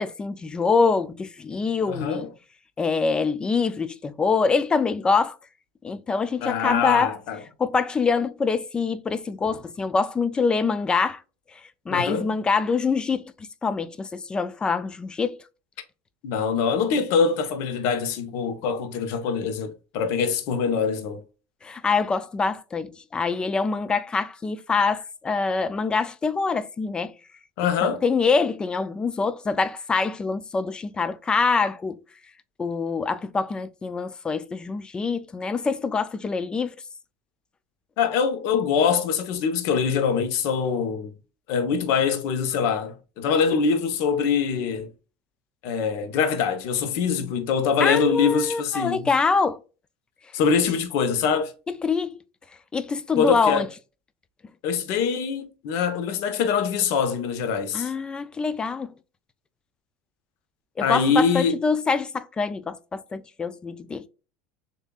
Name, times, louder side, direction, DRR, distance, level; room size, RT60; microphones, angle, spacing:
voice 1, 0.0-2.3 2.8-5.3 5.8-7.1 7.6-11.2 11.9-13.3 13.6-15.4 21.6-27.1 27.8-32.0 32.6-36.7 47.8-49.6 51.8-52.2 52.7-53.7 57.7-58.9 60.8-64.0, left 4 dB, 15° left, 0.3 m, -25 dB
voice 2, 1.9-2.3 6.4-7.4 11.9-12.3 16.2-21.2 27.6-28.0 38.0-41.1 41.5-44.9 45.6-49.1 50.3-51.5 53.2-53.6 54.6-57.9 60.8-61.6, left 6 dB, 60° left, 1.0 m, -24 dB
7.0 x 2.7 x 2.4 m
cardioid pair, 145°, 5 cm